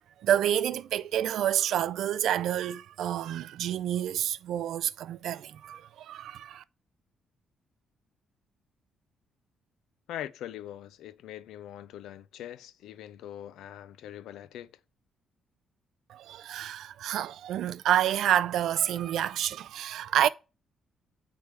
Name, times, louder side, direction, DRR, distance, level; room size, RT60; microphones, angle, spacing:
voice 1, 0.2-6.6 16.1-20.3, right 11 dB, 75° right, 0.3 m, -28 dB
voice 2, 10.1-14.7, left 11 dB, 80° left, 0.4 m, -42 dB
8.2 x 3.4 x 4.5 m
cardioid pair, 90°, 0 cm